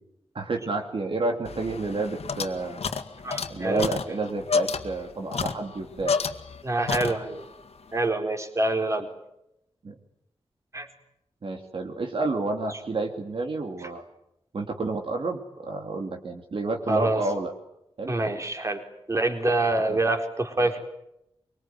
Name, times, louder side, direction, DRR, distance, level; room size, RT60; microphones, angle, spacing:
voice 1, 0.3-2.8 3.5-6.2 9.8-10.0 11.4-14.0 14.5-17.5 18.0-18.1 19.9-20.0 20.6-20.8, right 3 dB, 60° right, 3 dB, 2.8 m, -30 dB
sound 1, 1.4-6.6 6.9-7.5, left 5 dB, 90° left, 1.9 m, -30 dB
voice 2, 3.2-3.9 6.6-7.4 7.9-9.1 10.7-10.9 16.9-17.2 18.1-18.8 19.1-20.8, right 2 dB, 30° right, 4 dB, 4.0 m, -26 dB
24.5 x 24.0 x 9.2 m, 0.83 s
wide cardioid pair, 120°, 10 cm